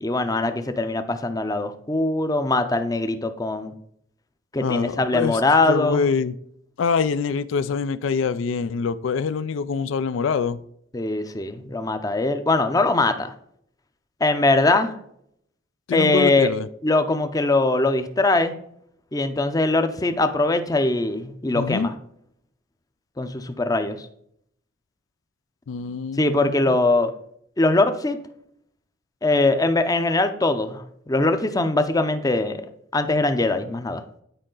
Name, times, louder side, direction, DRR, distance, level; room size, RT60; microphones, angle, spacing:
voice 1, 0.0-3.7 4.5-6.0 10.9-13.3 14.2-14.9 15.9-16.5 16.8-18.5 19.1-21.9 23.2-24.1 26.2-27.1 27.6-28.2 29.2-32.6 32.9-34.0, left 2 dB, 20° left, 0.5 m, -21 dB
voice 2, 4.6-5.4 5.7-6.3 6.8-10.6 15.9-16.7 21.5-21.9 25.7-26.8, left 5 dB, 85° left, 0.4 m, -25 dB
8.9 x 4.8 x 3.8 m
head